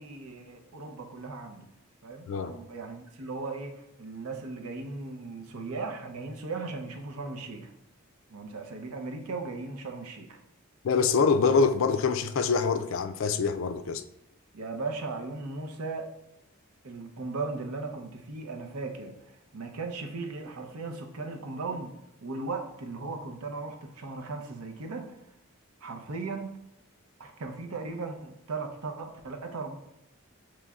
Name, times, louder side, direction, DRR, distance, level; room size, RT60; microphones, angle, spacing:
voice 1, 0.0-1.7 2.0-7.7 8.3-10.4 14.5-16.1 16.8-19.2 19.5-21.9 22.2-25.2 25.8-26.5 27.2-29.8, right 3 dB, 85° right, 0.6 m, -37 dB
voice 2, 10.8-14.0, left 5 dB, 65° left, 0.3 m, -25 dB
6.8 x 3.1 x 2.4 m
head